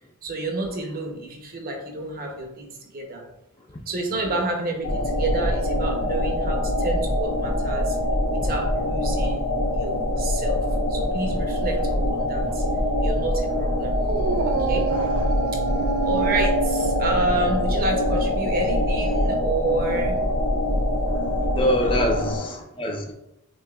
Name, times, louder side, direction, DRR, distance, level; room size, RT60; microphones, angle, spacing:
voice 1, 0.2-3.2 3.9-8.0 8.3-10.6 10.9-12.6 13.0-14.0 14.4-14.9 16.0-20.2 21.8-22.0, right 2 dB, 45° right, 2 dB, 0.8 m, -29 dB
sound 1, 4.8-22.4, left 1 dB, 85° left, 1.0 m, -24 dB
Dog, 14.0-20.6, right 7 dB, 70° right, 0.3 m, -30 dB
voice 2, 14.9-15.2 21.1-23.1, equal, 25° left, 1 dB, 0.5 m, -26 dB
6.3 x 2.8 x 2.3 m, 0.86 s
head